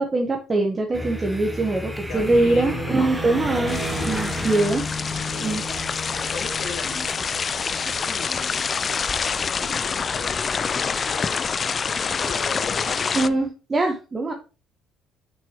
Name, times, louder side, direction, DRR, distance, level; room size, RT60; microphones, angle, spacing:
voice 1, 0.0-3.8 4.1-4.8 5.4-5.6 13.1-14.3, right 2 dB, 30° right, 2 dB, 1.2 m, -22 dB
sound 1, 0.9-13.5, equal, 5° right, 1.4 m, -33 dB
voice 2, 2.1-3.1 3.4-3.7 5.3-8.9 9.3-11.5 12.0-13.3, left 4 dB, 60° left, 2 dB, 2.3 m, -37 dB
sound 2, 2.2-2.5 3.7-4.3 5.8-6.5 7.1-7.2, right 4 dB, 90° right, 2.4 m, -52 dB
sound 3, 3.7-13.3, left 5 dB, 40° left, 0.4 m, -27 dB
6.2 x 6.1 x 3.0 m, 0.34 s
supercardioid pair, 60°, 0 cm